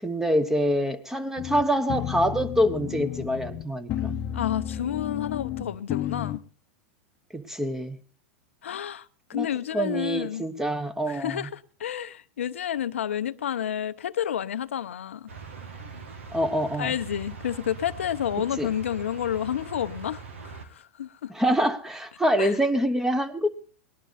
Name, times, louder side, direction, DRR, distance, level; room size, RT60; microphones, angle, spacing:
voice 1, 0.0-4.2 7.3-8.0 9.3-9.5 9.7-11.5 16.3-16.9 18.6-18.7 21.3-23.5, equal, 5° right, 1.1 m, -25 dB
sound 1, 1.4-6.4, left 11 dB, 40° left, 0.8 m, -32 dB
voice 2, 4.3-6.4 8.6-10.4 11.1-15.3 16.8-21.3 22.4-22.6, left 10 dB, 90° left, 0.7 m, -30 dB
sound 2, 15.3-20.7, right 5 dB, 85° right, 2.0 m, -42 dB
19.0 x 11.5 x 4.1 m
hypercardioid pair, 115°, 7 cm